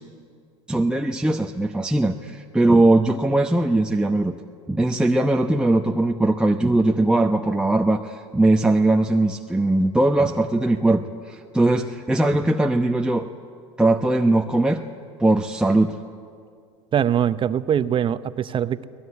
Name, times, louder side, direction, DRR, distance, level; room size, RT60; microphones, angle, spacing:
voice 1, 0.7-4.4 4.7-13.3 13.8-14.8 15.2-16.0, right 2 dB, 5° right, 3 dB, 0.9 m, -20 dB
voice 2, 16.9-18.9, right 9 dB, 35° right, 13 dB, 0.8 m, -22 dB
23.5 x 18.5 x 9.8 m, 2.3 s
hypercardioid pair, 85°, 15 cm